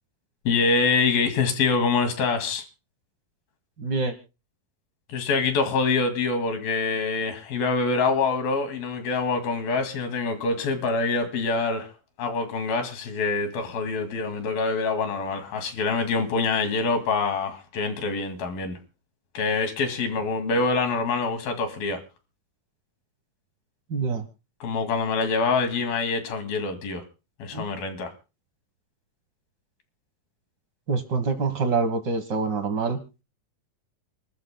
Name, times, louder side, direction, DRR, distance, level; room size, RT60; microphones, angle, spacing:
voice 1, 0.5-2.6 5.1-11.9 12.2-18.8 19.3-22.0 24.6-27.0 27.4-28.1, left 4 dB, 85° left, 4.2 m, -25 dB
voice 2, 3.8-4.1 23.9-24.2 27.5-27.7 30.9-33.0, right 4 dB, 60° right, 1.1 m, -26 dB
29.0 x 13.5 x 2.2 m
omnidirectional pair, 4.1 m